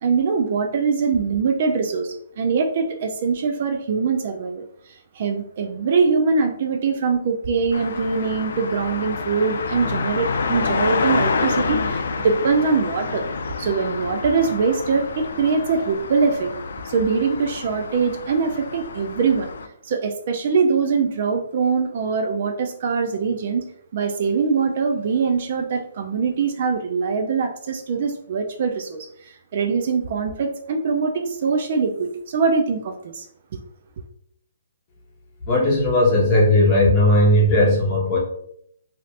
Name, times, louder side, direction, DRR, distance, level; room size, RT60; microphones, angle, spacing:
voice 1, 0.0-13.3 13.6-16.5 16.8-19.5 19.8-33.3, right 5 dB, 45° right, 5 dB, 0.3 m, -23 dB
sound 1, 7.7-19.7, left 4 dB, 65° left, 0.3 m, -28 dB
voice 2, 35.5-38.2, left 1 dB, 25° left, -4 dB, 1.0 m, -17 dB
2.7 x 2.4 x 3.2 m, 0.70 s
hypercardioid pair, 165°, 0 cm